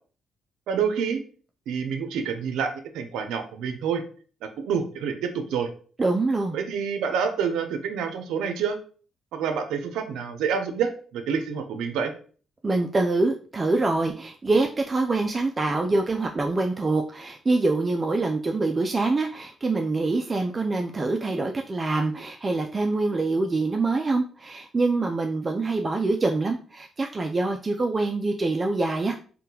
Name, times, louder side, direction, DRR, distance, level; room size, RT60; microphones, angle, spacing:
voice 1, 0.7-1.2 1.7-4.0 4.6-5.7 6.5-8.8 9.3-12.1, right 6 dB, 85° right, 7 dB, 0.5 m, -27 dB
voice 2, 6.0-6.6 12.6-29.2, right 3 dB, 30° right, 3 dB, 0.3 m, -25 dB
3.5 x 2.2 x 2.8 m, 0.41 s
cardioid pair, 90°, 0 cm